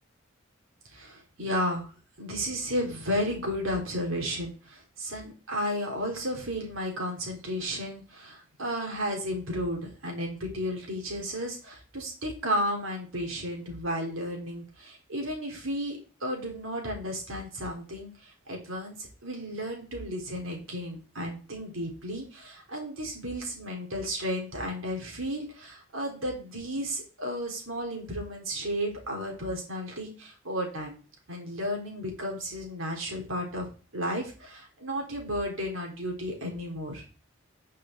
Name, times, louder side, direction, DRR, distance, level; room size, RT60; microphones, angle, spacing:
voice 1, 0.9-1.9 2.2-30.9 31.3-37.0, equal, 80° right, 1 dB, 4.0 m, -33 dB
13.0 x 6.6 x 3.9 m, 0.35 s
head